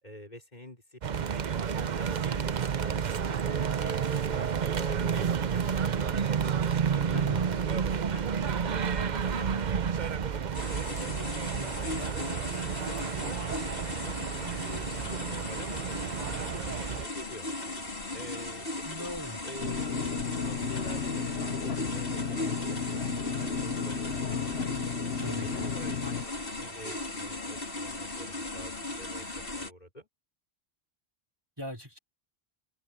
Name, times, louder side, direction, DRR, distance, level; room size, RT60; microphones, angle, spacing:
voice 1, 0.0-1.4 1.8-6.5 6.8-10.4 11.0-12.4 12.7-13.7 14.0-17.5 18.1-18.7 19.0-19.1 19.4-24.9 25.4-29.3 29.6-30.1, left 1 dB, 45° left, 5.1 m, -47 dB
sound 1, 1.0-17.1, right 7 dB, 50° right, 0.8 m, -30 dB
voice 2, 7.1-7.6 18.8-19.4 25.2-25.7 31.6-32.0, equal, 25° right, 4.2 m, -39 dB
sound 2, 10.5-29.7, left 2 dB, 65° left, 3.2 m, -37 dB
sound 3, 19.6-26.2, left 5 dB, 85° left, 1.4 m, -33 dB
open air
omnidirectional pair, 1.0 m